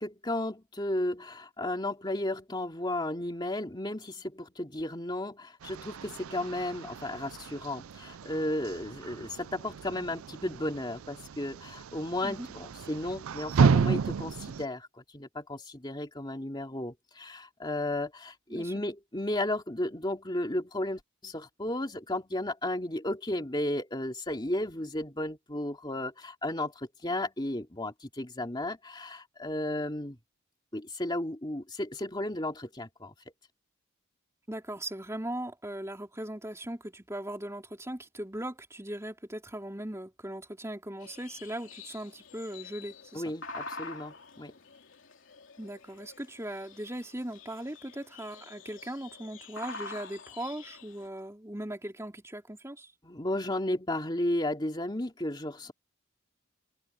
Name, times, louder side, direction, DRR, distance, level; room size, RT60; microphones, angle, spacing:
voice 1, 0.0-30.2 30.7-33.1 43.1-44.5 53.0-55.7, left 1 dB, 20° left, 2.7 m, -34 dB
sound 1, 5.6-14.6, right 5 dB, 80° right, 0.4 m, -32 dB
voice 2, 34.5-43.3 45.6-52.9, right 1 dB, 15° right, 3.7 m, -39 dB
sound 2, 41.0-51.1, left 3 dB, 60° left, 3.5 m, -47 dB
head